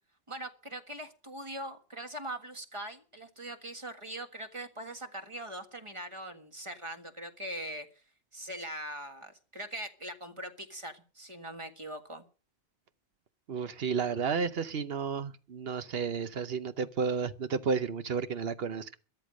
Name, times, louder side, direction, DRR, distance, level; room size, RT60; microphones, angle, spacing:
voice 1, 0.3-7.9 8.3-12.3, right 1 dB, 30° right, 1.7 m, -41 dB
voice 2, 13.5-19.0, right 5 dB, 65° right, 1.0 m, -32 dB
13.5 x 10.5 x 6.3 m
omnidirectional pair, 1.1 m